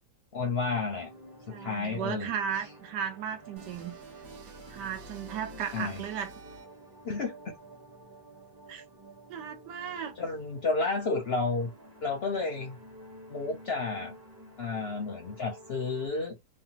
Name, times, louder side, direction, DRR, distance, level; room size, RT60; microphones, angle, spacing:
voice 1, 0.3-1.1 1.5-2.3 5.7-6.0 7.0-7.5 10.2-11.7 12.0-12.8 13.3-14.1 14.6-16.4, left 3 dB, 60° left, 0.6 m, -31 dB
sound 1, 0.6-16.1, right 1 dB, 25° right, 0.5 m, -51 dB
voice 2, 1.5-4.0 4.7-6.3 8.7-8.8 9.3-10.1, right 8 dB, 85° right, 1.3 m, -35 dB
sound 2, 3.6-7.0, right 2 dB, 65° right, 1.2 m, -49 dB
3.4 x 2.1 x 2.8 m
omnidirectional pair, 1.8 m